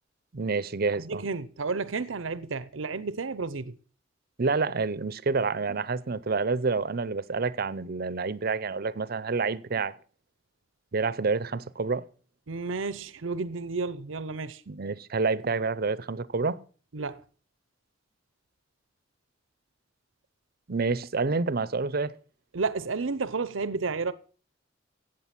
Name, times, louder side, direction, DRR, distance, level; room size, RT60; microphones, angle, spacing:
voice 1, 0.3-1.2 4.4-10.0 10.9-12.0 14.7-16.6 20.7-22.1, right 4 dB, 50° right, 0.7 m, -28 dB
voice 2, 1.0-3.8 12.5-14.6 16.9-17.2 22.5-24.1, right 4 dB, 90° right, 0.8 m, -31 dB
15.5 x 8.9 x 6.0 m
head